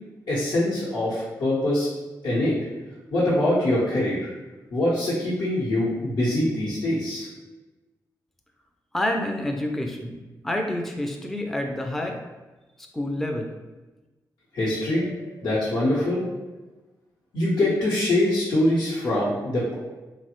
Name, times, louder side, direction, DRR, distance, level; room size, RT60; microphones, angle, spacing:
voice 1, 0.3-1.9 2.2-2.6 3.1-4.3 4.7-7.3 14.5-16.3 17.3-19.7, left 1 dB, 80° left, -11 dB, 0.8 m, -23 dB
voice 2, 8.9-10.2 10.4-12.2 12.9-13.5, left 1 dB, 5° left, 2 dB, 0.4 m, -28 dB
3.1 x 2.0 x 2.9 m, 1.1 s
cardioid pair, 60°, 8 cm